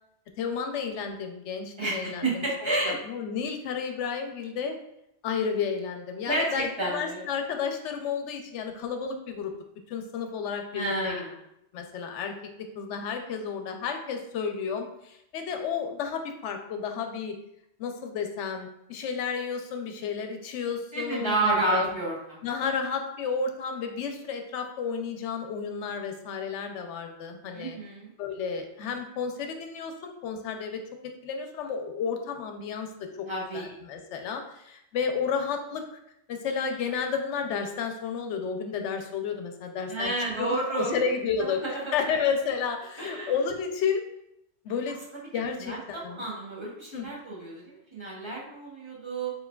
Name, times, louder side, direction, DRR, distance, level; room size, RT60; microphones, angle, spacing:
voice 1, 0.4-2.5 2.9-4.8 5.2-9.5 9.9-11.2 11.7-17.3 17.8-21.9 22.4-27.8 28.2-30.8 31.2-33.3 33.5-36.0 36.3-40.1 40.4-40.5 40.7-44.0 44.6-45.0 45.3-46.2 46.9-47.1, left 6 dB, 85° left, 5 dB, 0.9 m, -32 dB
voice 2, 1.8-3.0 6.3-7.2 10.7-11.3 20.9-22.4 27.5-28.1 33.3-33.7 39.9-41.0 41.6-41.9 43.0-43.3 45.6-49.3, right 2 dB, 25° right, -5 dB, 1.0 m, -30 dB
4.5 x 3.6 x 2.3 m, 0.80 s
omnidirectional pair, 1.2 m